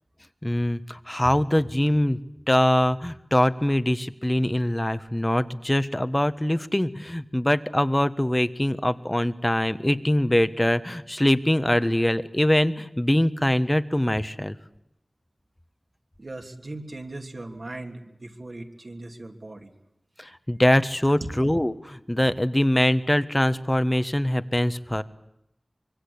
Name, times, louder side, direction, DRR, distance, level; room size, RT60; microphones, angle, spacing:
voice 1, 0.4-2.2 2.5-14.5 20.2-25.0, left 1 dB, 15° left, 12 dB, 1.4 m, -23 dB
voice 2, 16.2-19.7 21.0-21.2, right 2 dB, 60° right, 3 dB, 3.2 m, -39 dB
24.5 x 24.0 x 8.7 m, 0.82 s
wide cardioid pair, 45°, 0 cm